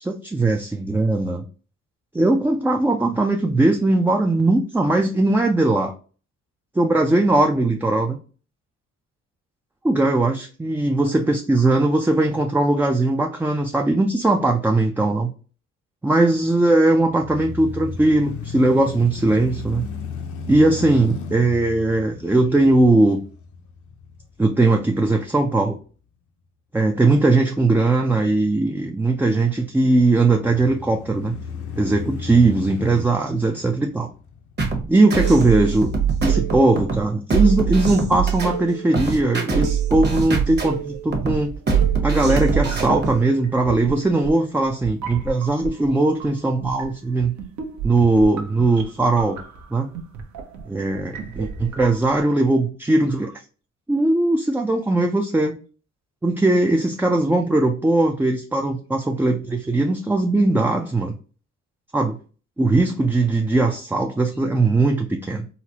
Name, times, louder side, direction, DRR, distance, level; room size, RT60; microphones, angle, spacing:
voice 1, 0.0-1.4 2.1-5.9 6.8-8.2 9.8-15.3 16.0-19.9 20.5-23.2 24.4-25.8 26.7-31.4 31.8-34.1 34.9-35.9 36.2-41.5 42.0-47.3 47.8-49.4 49.7-49.9 50.7-53.3 53.9-55.5 56.2-61.2 61.9-62.2 62.6-65.5, right 2 dB, 5° right, 2 dB, 0.3 m, -19 dB
sound 1, 17.1-25.2 25.7-25.8 30.3-34.8, left 4 dB, 75° left, 0.8 m, -34 dB
sound 2, 34.6-43.2, right 6 dB, 35° right, 1.1 m, -22 dB
sound 3, 40.3-52.3, right 4 dB, 70° right, 0.9 m, -35 dB
4.0 x 2.1 x 2.7 m, 0.38 s
cardioid pair, 90°, 30 cm